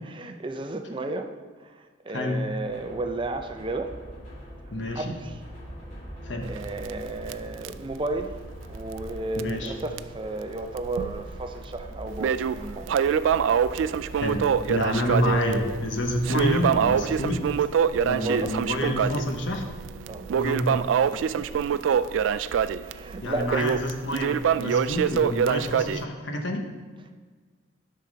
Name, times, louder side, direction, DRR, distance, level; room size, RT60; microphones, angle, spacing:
voice 1, 0.2-1.3 1.6-4.0 4.9-5.4 6.4-8.4 8.7-12.9 15.0-15.7 17.1-17.2 18.0-18.6 20.1-20.3 21.1-22.0 22.8-23.7, right 2 dB, 25° right, 6 dB, 0.5 m, -33 dB
sound 1, 2.6-17.6, equal, 45° left, 2.8 m, -43 dB
voice 2, 4.7-5.1 6.2-6.5 9.4-9.7 14.1-17.5 18.0-19.7 20.3-20.8 23.2-26.7, left 1 dB, 75° left, 3 dB, 1.1 m, -28 dB
Crackle, 6.4-9.1 9.4-9.5 10.0-10.1 10.8-11.4 11.8-26.0, right 7 dB, 80° right, 0.3 m, -25 dB
10.5 x 5.8 x 3.9 m, 1.5 s
head